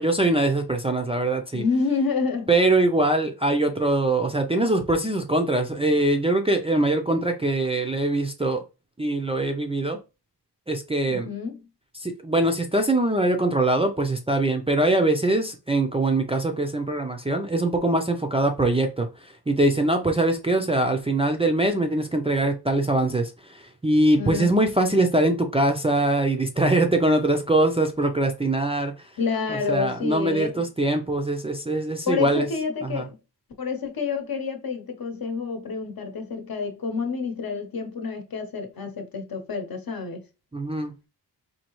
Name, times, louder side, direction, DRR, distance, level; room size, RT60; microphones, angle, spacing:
voice 1, 0.0-1.6 2.5-8.6 9.0-10.0 10.7-11.3 12.0-28.9 29.5-32.5 32.9-33.1 40.5-40.9, right 2 dB, 15° right, 0.4 m, -23 dB
voice 2, 1.5-2.5 11.1-11.6 24.2-24.5 29.2-30.6 32.0-33.2 33.6-40.3, left 5 dB, 55° left, 0.9 m, -28 dB
4.1 x 2.7 x 3.0 m
wide cardioid pair, 135°, 42 cm